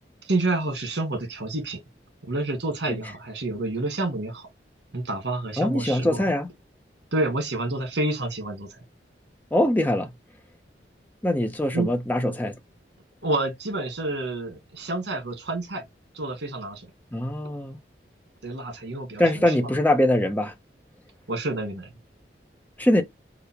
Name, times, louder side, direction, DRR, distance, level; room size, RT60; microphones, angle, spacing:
voice 1, 0.2-1.8 2.2-4.5 4.9-6.2 7.1-8.8 11.7-11.9 13.2-15.8 16.1-16.9 18.4-19.7 21.3-21.9, right 2 dB, 85° right, 1.6 m, -29 dB
voice 2, 5.6-6.5 9.5-10.1 11.2-12.6 17.1-17.8 19.2-20.5 22.8-23.0, left 1 dB, 10° left, 0.5 m, -22 dB
4.9 x 2.0 x 2.9 m
head